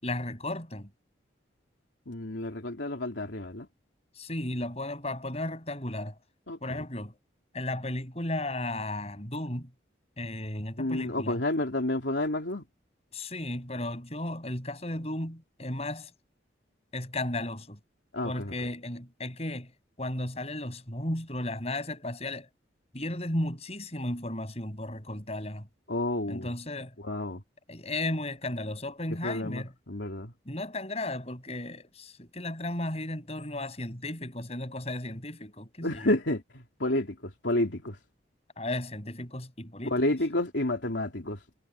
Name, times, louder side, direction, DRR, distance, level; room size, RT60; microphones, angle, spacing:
voice 1, 0.0-0.9 4.2-6.2 6.6-7.2 7.5-9.7 10.2-11.4 13.1-16.1 16.9-17.8 18.2-22.5 22.9-25.7 26.3-26.9 27.7-29.7 30.5-36.1 38.6-39.9, left 1 dB, 35° left, 6.3 m, -34 dB
voice 2, 2.1-3.7 6.5-6.8 10.8-12.6 18.1-18.5 25.9-26.5 27.0-27.4 29.2-30.3 35.8-38.0 39.9-41.4, left 1 dB, 75° left, 3.1 m, -30 dB
head